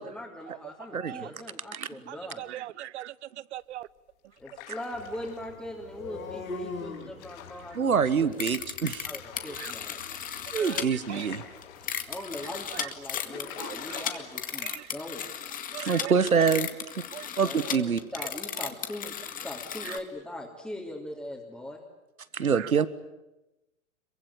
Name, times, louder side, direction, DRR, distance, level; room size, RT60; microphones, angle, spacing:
voice 1, 0.0-2.5 4.4-8.3 9.0-10.4 12.1-15.3 17.4-19.1 19.4-21.8, left 1 dB, 5° left, 3.4 m, -41 dB
voice 2, 1.7-3.1 3.5-3.9 9.6-9.7 10.6-11.3 12.8-12.9 13.6-14.0 14.6-14.9 15.7-16.1 17.1-17.3 19.9-20.0 22.4-22.7, right 14 dB, 55° right, 0.8 m, -40 dB
sound 1, 4.3-5.7 6.9-8.0 8.8-9.8 10.3-10.4 10.7-12.2 12.9-14.8 15.1-15.2 15.8-16.7, left 8 dB, 45° left, 5.5 m, -46 dB
sound 2, 4.9-12.9, left 3 dB, 75° left, 7.2 m, -44 dB
voice 3, 7.7-9.1 10.5-11.4 15.8-16.7 17.4-18.0 22.3-22.9, right 6 dB, 90° right, 1.4 m, -25 dB
sound 3, 8.3-10.8 11.6-20.0, left 9 dB, 20° left, 2.0 m, -35 dB
26.5 x 23.5 x 8.8 m
hypercardioid pair, 115°, 41 cm